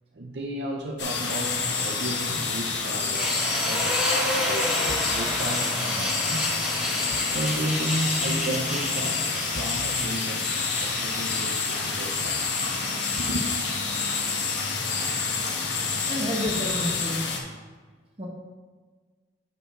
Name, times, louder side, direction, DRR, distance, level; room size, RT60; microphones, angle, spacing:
voice 1, 0.1-4.8 5.1-6.5 7.3-12.6 13.2-13.5, right 1 dB, 60° right, 1 dB, 0.7 m, -33 dB
sound 1, 1.0-17.4, left 4 dB, 65° left, 1.1 m, -28 dB
sound 2, 3.1-15.1, equal, 5° right, 2.2 m, -31 dB
sound 3, 4.9-5.3 7.1-7.4 9.5-9.9 12.2-12.5 14.4-14.6 16.4-16.7, left 2 dB, 50° left, 0.6 m, -42 dB
voice 2, 16.0-17.2 18.2-18.3, equal, 30° right, -1 dB, 1.3 m, -30 dB
10.5 x 4.5 x 3.8 m, 1.4 s
head